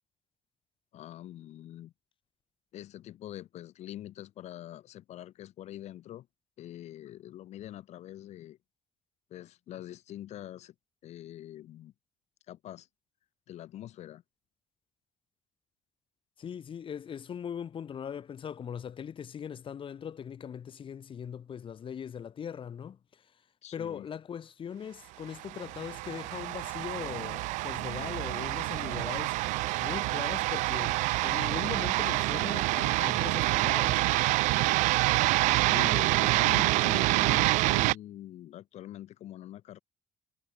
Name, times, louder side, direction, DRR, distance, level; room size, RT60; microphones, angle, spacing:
voice 1, 0.9-1.9 2.7-6.3 6.6-8.6 9.3-10.7 11.0-11.9 12.5-12.9 13.5-14.2 23.6-24.1 35.5-39.8, left 13 dB, 65° left, 4.5 m, -44 dB
voice 2, 16.4-23.3 23.7-29.4 29.8-34.1, left 8 dB, 45° left, 6.3 m, -40 dB
sound 1, 25.4-37.9, right 21 dB, 85° right, 0.6 m, -27 dB
cardioid pair, 105°, 12 cm